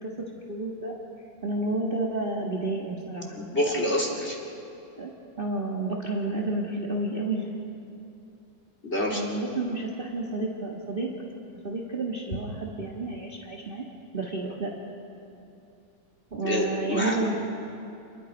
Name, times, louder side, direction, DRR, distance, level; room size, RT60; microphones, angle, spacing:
voice 1, 0.0-1.0 1.4-3.3 5.0-5.1 5.4-7.5 9.1-11.1 11.6-13.8 14.1-14.7 16.3-17.3, right 2 dB, 45° right, -1 dB, 0.7 m, -30 dB
voice 2, 3.3-4.4 8.8-9.2 14.4-14.5 16.4-17.2, left 1 dB, 20° left, -1 dB, 2.8 m, -27 dB
28.5 x 21.0 x 5.3 m, 2.7 s
omnidirectional pair, 3.9 m